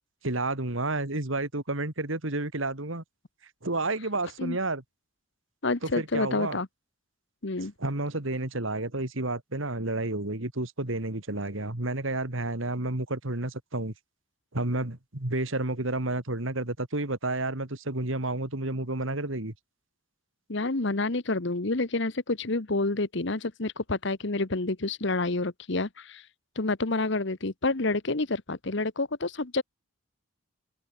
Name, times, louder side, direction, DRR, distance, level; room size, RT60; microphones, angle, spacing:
voice 1, 0.2-3.0 3.6-4.8 5.8-6.6 7.8-13.9 14.5-19.5, right 2 dB, 65° right, 2.6 m, -30 dB
voice 2, 5.6-6.7 7.4-7.7 20.5-26.2 26.6-29.6, left 2 dB, 55° left, 1.2 m, -28 dB
head